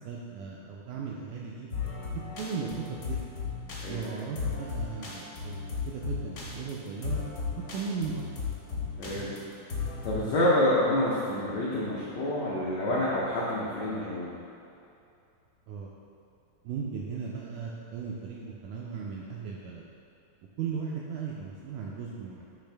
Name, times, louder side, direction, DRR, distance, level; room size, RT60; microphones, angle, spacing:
voice 1, 0.0-1.7 2.1-3.2 3.9-7.2 7.7-8.2 15.7-15.9 16.6-19.8 20.6-22.5, right 6 dB, 85° right, -3 dB, 1.8 m, -37 dB
sound 1, 1.7-10.3, left 5 dB, 65° left, 1.2 m, -35 dB
voice 2, 9.0-9.4 10.0-14.3, left 1 dB, 85° left, -7 dB, 1.5 m, -28 dB
10.0 x 3.3 x 3.3 m, 2.6 s
omnidirectional pair, 4.0 m